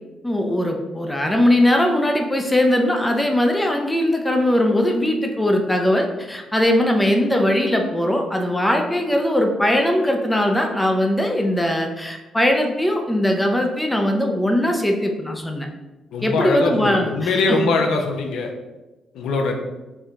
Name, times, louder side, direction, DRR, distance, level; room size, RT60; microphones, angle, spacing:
voice 1, 0.2-15.7 16.2-17.8, left 1 dB, 10° left, 3 dB, 0.5 m, -20 dB
voice 2, 16.1-18.5 19.1-19.5, left 3 dB, 80° left, 3 dB, 0.6 m, -22 dB
4.5 x 2.3 x 3.7 m, 1.1 s
cardioid pair, 90°, 0 cm